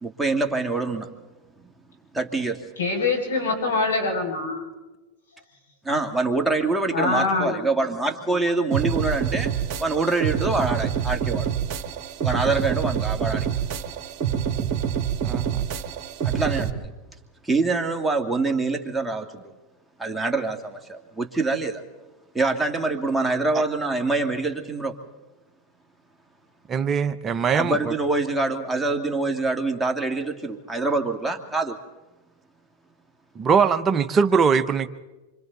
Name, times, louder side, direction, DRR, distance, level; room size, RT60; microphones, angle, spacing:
voice 1, 0.0-1.1 2.1-2.6 5.9-9.5 9.8-11.5 12.2-13.5 16.2-16.9 17.5-19.3 20.0-21.8 22.3-24.9 27.5-31.8, right 3 dB, 5° right, 3 dB, 2.2 m, -25 dB
voice 2, 2.8-4.7 6.9-7.6, left 3 dB, 90° left, 2 dB, 6.3 m, -24 dB
sound 1, 8.7-16.7, right 8 dB, 45° right, 2.1 m, -26 dB
voice 3, 15.2-15.6 23.5-23.6 26.7-27.9 33.4-34.9, right 6 dB, 25° right, 9 dB, 1.0 m, -21 dB
27.5 x 25.0 x 4.1 m, 1.1 s
hypercardioid pair, 110°, 0 cm